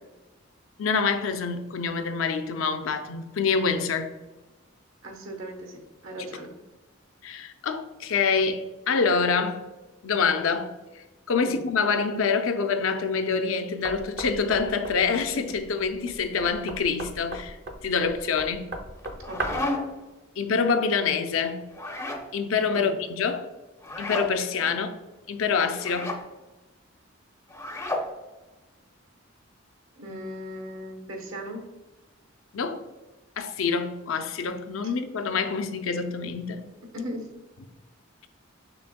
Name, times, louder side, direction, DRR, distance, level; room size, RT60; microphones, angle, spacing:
voice 1, 0.8-4.1 7.2-9.6 10.0-10.7 11.3-17.6 17.8-18.7 20.4-21.6 22.3-23.5 24.0-24.9 25.3-26.2 32.5-32.8 33.4-36.6, left 5 dB, 75° left, 0.5 m, -26 dB
voice 2, 5.0-6.5 11.4-11.6 19.3-19.6 22.7-23.0 24.6-24.8 30.0-31.6 36.9-37.3, equal, 80° right, 1.0 m, -38 dB
Knock, 13.8-19.8, right 1 dB, 50° right, 0.5 m, -37 dB
sound 1, 19.0-20.1 21.7-22.3 23.8-24.3 25.8-26.2 27.5-28.1, left 1 dB, 15° left, 0.4 m, -32 dB
6.0 x 3.4 x 2.2 m
head